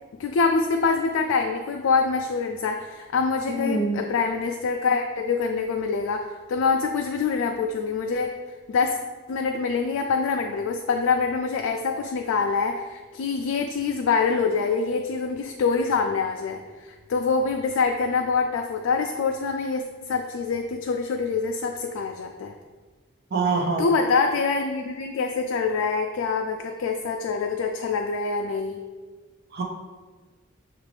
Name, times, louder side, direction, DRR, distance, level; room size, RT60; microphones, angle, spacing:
voice 1, 0.2-9.0 9.3-22.5 23.8-28.8, left 4 dB, 85° left, 3 dB, 0.3 m, -25 dB
voice 2, 3.5-4.0 23.3-23.8 29.5-29.6, right 3 dB, 50° right, 1 dB, 0.5 m, -25 dB
5.9 x 2.5 x 3.2 m, 1.4 s
head